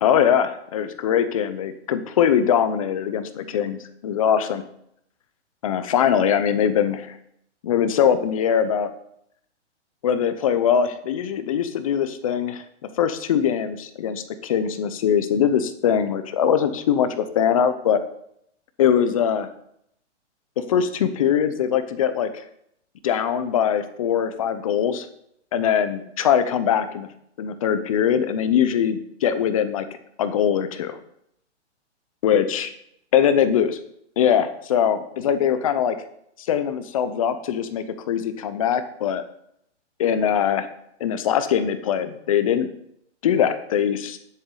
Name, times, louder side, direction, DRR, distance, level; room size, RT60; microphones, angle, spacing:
voice 1, 0.0-4.6 5.6-7.2 7.6-8.9 10.0-12.6 13.0-18.0 18.8-19.5 20.6-22.4 23.0-25.1 25.5-27.1 27.4-31.0 32.2-32.7 33.1-33.8 34.2-36.0 36.5-39.2 40.0-40.7 41.0-42.7 43.2-44.2, left 8 dB, 30° left, 11 dB, 0.7 m, -22 dB
10.0 x 7.4 x 3.9 m, 0.73 s
hypercardioid pair, 160°, 36 cm